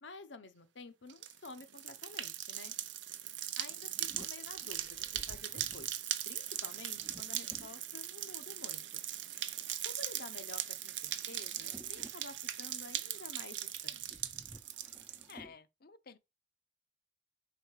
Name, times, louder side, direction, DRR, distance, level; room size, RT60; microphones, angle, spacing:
voice 1, 0.0-2.7 3.6-3.9 4.2-6.0 6.3-9.0 9.8-14.2, left 3 dB, 85° left, 0.9 m, -51 dB
sound 1, 1.1-15.3, right 12 dB, 90° right, 0.6 m, -40 dB
sound 2, 3.4-8.3 8.9-15.6, right 1 dB, 10° right, 0.5 m, -58 dB
voice 2, 15.3-16.2, left 6 dB, 55° left, 0.6 m, -52 dB
5.3 x 4.3 x 5.7 m
head